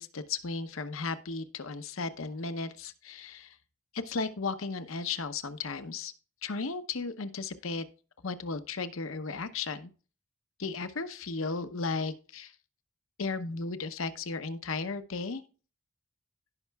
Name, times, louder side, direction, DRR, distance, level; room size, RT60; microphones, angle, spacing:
voice 1, 0.0-3.5 3.9-6.1 6.4-7.8 8.2-9.9 10.6-12.5 13.2-15.4, left 4 dB, 75° left, 10 dB, 0.8 m, -35 dB
16.5 x 5.6 x 2.3 m, 0.36 s
head